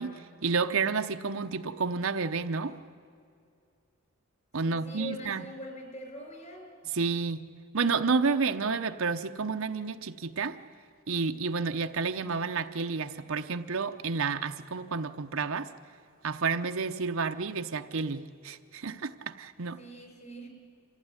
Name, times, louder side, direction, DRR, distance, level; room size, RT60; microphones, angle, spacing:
voice 1, 0.0-2.7 4.5-5.4 6.9-7.4 7.7-10.6 11.1-15.7 16.2-19.8, right 4 dB, 70° right, 0.8 m, -30 dB
voice 2, 4.6-6.7 19.8-20.5, equal, 35° left, 4.9 m, -43 dB
26.0 x 15.5 x 9.8 m
head